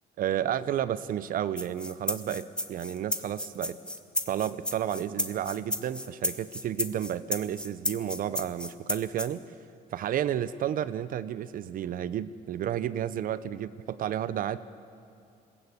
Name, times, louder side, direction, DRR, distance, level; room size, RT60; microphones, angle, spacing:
voice 1, 0.2-3.8 4.3-9.4 9.9-14.6, right 10 dB, 55° right, 15 dB, 0.6 m, -31 dB
sound 1, 1.6-9.3, left 1 dB, 5° left, 1.0 m, -32 dB
21.0 x 16.0 x 8.5 m, 2.5 s
cardioid pair, 110°, 17 cm